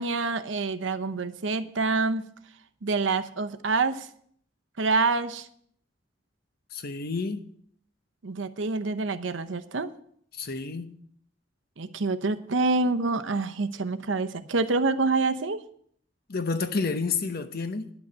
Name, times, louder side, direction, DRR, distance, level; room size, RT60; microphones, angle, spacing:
voice 1, 0.0-2.2 2.8-4.1 4.8-5.5 8.2-9.9 11.8-15.6, right 3 dB, 85° right, 0.8 m, -27 dB
voice 2, 6.7-7.4 10.4-10.9 16.3-17.9, left 4 dB, 55° left, 0.9 m, -30 dB
10.5 x 6.1 x 8.7 m
head